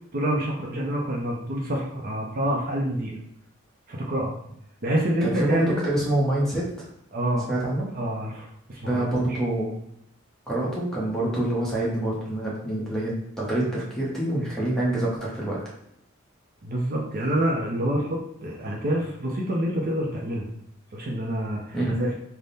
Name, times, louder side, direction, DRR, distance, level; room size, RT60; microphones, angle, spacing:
voice 1, 0.1-3.2 3.9-4.4 4.8-5.9 7.1-7.5 7.9-9.4 16.6-20.5 20.9-22.1, right 1 dB, 45° right, -2 dB, 0.6 m, -27 dB
voice 2, 5.2-6.9 7.5-7.9 8.9-9.8 10.5-15.6 21.7-22.0, right 1 dB, 5° left, -6 dB, 0.9 m, -26 dB
3.5 x 2.2 x 4.0 m, 0.75 s
head